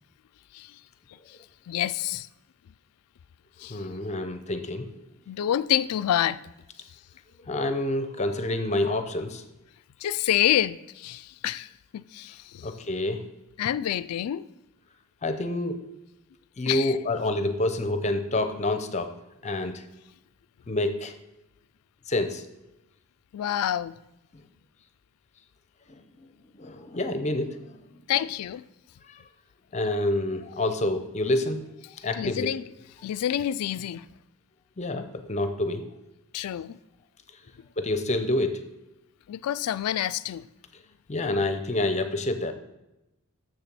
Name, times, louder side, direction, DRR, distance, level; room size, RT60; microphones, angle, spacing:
voice 1, 1.7-2.3 3.6-3.8 5.3-6.4 10.0-12.7 13.6-14.4 16.7-17.0 23.3-23.9 28.1-28.6 32.2-32.6 33.0-34.0 36.3-36.8 39.3-40.4, left 11 dB, 85° left, 0.3 m, -27 dB
voice 2, 3.7-4.9 7.5-9.4 12.6-13.3 15.2-15.8 16.6-19.1 19.4-19.8 20.7-21.1 22.1-22.4 25.9-26.3 26.5-27.8 29.1-29.2 29.7-31.6 32.0-32.5 34.8-35.8 37.8-38.7 41.1-42.5, left 2 dB, 30° left, 0.6 m, -28 dB
6.9 x 6.8 x 6.0 m
head